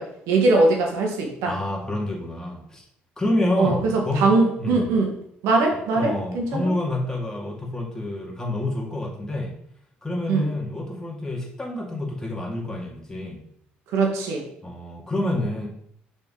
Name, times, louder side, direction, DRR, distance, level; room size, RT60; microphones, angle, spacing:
voice 1, 0.0-1.5 3.6-5.1 5.4-6.7 10.3-10.5 13.9-14.4, right 3 dB, 75° right, 1 dB, 1.5 m, -21 dB
voice 2, 1.5-2.8 3.2-4.3 4.6-5.0 6.0-9.5 10.0-13.4 14.6-15.7, left 1 dB, 15° left, -2 dB, 2.2 m, -28 dB
6.4 x 4.2 x 3.8 m, 0.69 s
hypercardioid pair, 60°, 5 cm